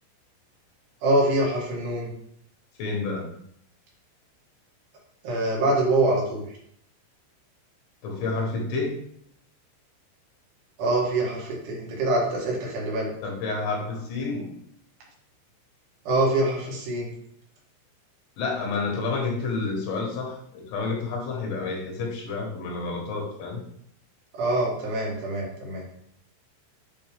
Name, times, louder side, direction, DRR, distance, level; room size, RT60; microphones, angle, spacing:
voice 1, 1.0-2.1 5.2-6.4 10.8-13.1 16.1-17.1 24.3-25.9, right 2 dB, 70° right, -3 dB, 3.7 m, -24 dB
voice 2, 2.8-3.3 8.0-9.0 13.2-14.5 18.4-23.6, left 3 dB, 80° left, 0 dB, 3.8 m, -29 dB
9.5 x 3.2 x 3.6 m, 0.69 s
omnidirectional pair, 5.2 m